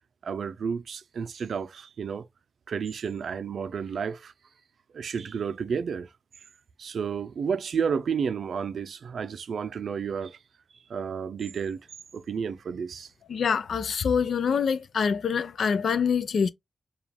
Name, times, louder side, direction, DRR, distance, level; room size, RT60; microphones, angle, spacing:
voice 1, 0.2-2.3 2.7-4.3 4.9-6.1 6.8-10.4 10.9-11.8 12.1-13.1, right 6 dB, 80° right, 0.4 m, -31 dB
voice 2, 13.3-16.5, left 6 dB, 80° left, 0.4 m, -25 dB
4.8 x 2.3 x 3.4 m
cardioid pair, 55°, 0 cm